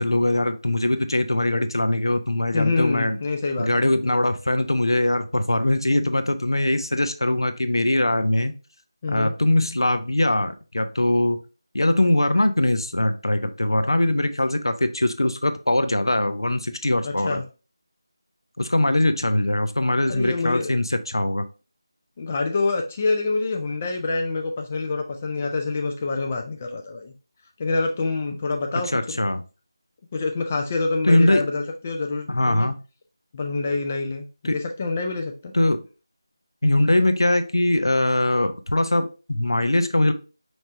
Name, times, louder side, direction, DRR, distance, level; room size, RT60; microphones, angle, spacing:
voice 1, 0.0-3.2 3.6-8.6 9.1-11.4 11.7-17.4 18.6-21.4 28.9-29.4 31.0-31.5 32.3-32.8 34.4-34.6 35.5-35.8 36.6-40.1, left 1 dB, 75° left, 10 dB, 0.6 m, -21 dB
voice 2, 2.5-4.2 9.0-9.3 17.0-17.4 20.1-20.8 22.2-27.1 27.6-29.2 30.1-32.7 33.3-35.5, left 3 dB, 20° left, 3 dB, 0.4 m, -26 dB
5.2 x 3.1 x 2.5 m, 0.33 s
figure-of-eight pair, 165°, 2 cm